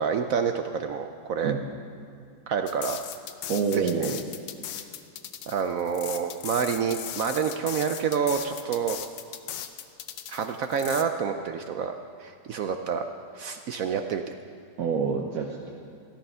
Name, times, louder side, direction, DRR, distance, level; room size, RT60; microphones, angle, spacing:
voice 1, 0.0-1.5 2.5-3.0 3.7-4.1 5.5-9.0 10.3-13.1 13.4-14.3, right 7 dB, 75° right, 6 dB, 0.7 m, -28 dB
sound 1, 2.7-11.0, left 10 dB, 90° left, 1.5 m, -38 dB
voice 2, 3.5-4.2 14.8-15.7, right 6 dB, 60° right, 1 dB, 1.2 m, -27 dB
15.0 x 13.0 x 5.6 m, 2.5 s
omnidirectional pair, 2.1 m